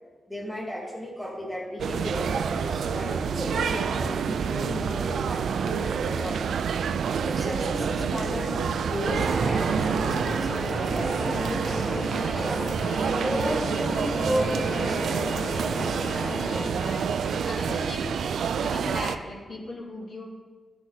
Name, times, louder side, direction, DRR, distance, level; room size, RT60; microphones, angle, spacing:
voice 1, 0.3-6.4 7.2-12.7 13.1-15.6, equal, 5° left, -1 dB, 2.0 m, -34 dB
sound 1, 1.8-19.2, right 6 dB, 90° right, 0.4 m, -28 dB
sound 2, 9.1-16.7, equal, 85° left, 3.0 m, -33 dB
voice 2, 16.6-18.1 18.5-20.3, left 2 dB, 60° left, -4 dB, 2.7 m, -37 dB
14.0 x 6.0 x 4.0 m, 1.5 s
wide cardioid pair, 135°, 0 cm